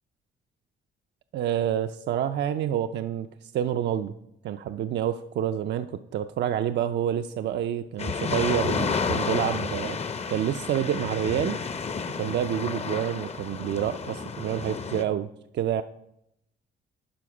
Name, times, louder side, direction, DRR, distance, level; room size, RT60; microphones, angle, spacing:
voice 1, 1.3-4.1 4.4-10.0 10.3-11.6 12.2-15.3 15.6-15.8, right 10 dB, 60° right, 8 dB, 0.4 m, -28 dB
sound 1, 8.0-15.0, left 5 dB, 35° left, 0.6 m, -31 dB
11.0 x 5.2 x 4.9 m, 0.81 s
cardioid pair, 90°, 20 cm